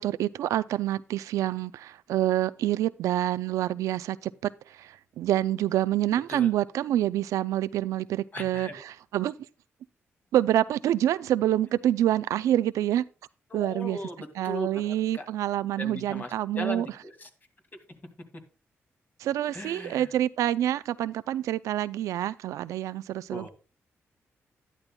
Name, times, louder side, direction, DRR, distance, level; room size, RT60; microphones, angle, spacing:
voice 1, 0.0-9.3 10.3-13.0 13.5-14.0 14.4-16.9 19.2-23.5, right 12 dB, 90° right, 0.3 m, -27 dB
voice 2, 8.3-8.8 13.5-15.3 15.8-17.3 19.5-20.1 23.3-23.5, left 1 dB, 35° left, 2.3 m, -38 dB
11.5 x 10.5 x 2.2 m
cardioid pair, 65°, 5 cm